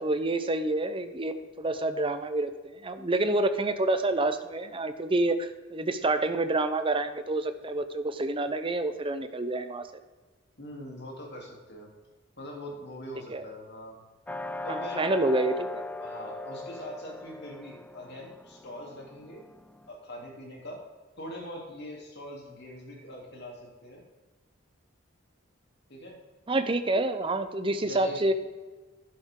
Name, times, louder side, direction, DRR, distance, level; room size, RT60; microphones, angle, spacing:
voice 1, 0.0-2.5 2.8-9.9 13.3-13.4 14.7-15.8 26.5-28.3, right 2 dB, 25° right, 10 dB, 0.8 m, -28 dB
voice 2, 10.6-11.9 12.4-14.0 14.6-15.1 16.0-19.4 19.9-20.8 21.2-24.0 25.9-26.2 27.8-28.3, equal, 55° left, -1 dB, 3.3 m, -42 dB
sound 1, 14.3-19.9, left 2 dB, 10° left, 0.3 m, -39 dB
11.5 x 11.0 x 3.8 m, 1.3 s
head